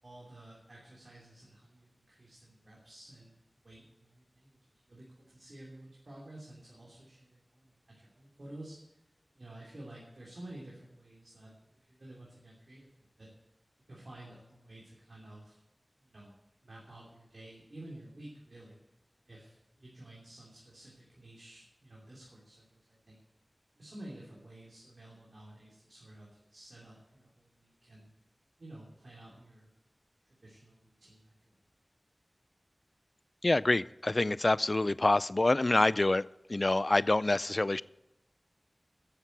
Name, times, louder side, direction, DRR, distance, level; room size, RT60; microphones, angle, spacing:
voice 1, 0.0-3.4 3.6-9.0 9.3-12.9 13.2-13.3 13.9-15.6 16.0-16.3 16.6-18.8 19.3-23.2 23.7-28.1 28.6-29.7 30.3-31.6, right 1 dB, 70° right, -4 dB, 2.9 m, -52 dB
voice 2, 33.4-37.8, left 2 dB, 50° left, 20 dB, 0.3 m, -27 dB
9.9 x 7.2 x 9.1 m, 0.91 s
wide cardioid pair, 40°, 0 cm